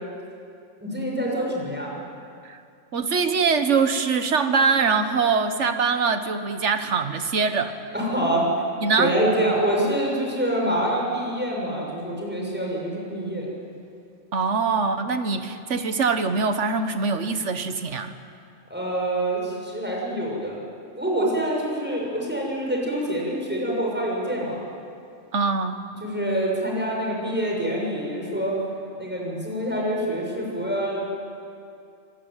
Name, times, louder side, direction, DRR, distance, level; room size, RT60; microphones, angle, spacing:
voice 1, 0.8-1.9 7.9-8.5 9.0-13.5 18.7-20.6 21.0-24.6 26.0-28.6 29.0-31.0, right 1 dB, 10° right, -3 dB, 6.5 m, -26 dB
voice 2, 2.9-7.8 8.8-9.1 14.3-18.1 25.3-25.8, right 5 dB, 65° right, 9 dB, 1.6 m, -23 dB
25.5 x 19.5 x 9.1 m, 2.5 s
omnidirectional pair, 1.4 m